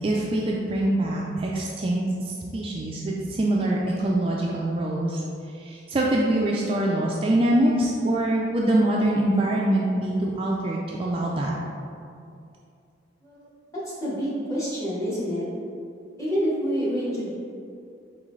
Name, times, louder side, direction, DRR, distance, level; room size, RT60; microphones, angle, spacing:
voice 1, 0.0-5.2 5.6-11.5, right 1 dB, 30° right, -3 dB, 0.3 m, -24 dB
voice 2, 13.8-15.5 16.2-17.3, equal, 15° left, -8 dB, 1.2 m, -27 dB
4.5 x 3.7 x 3.1 m, 2.5 s
head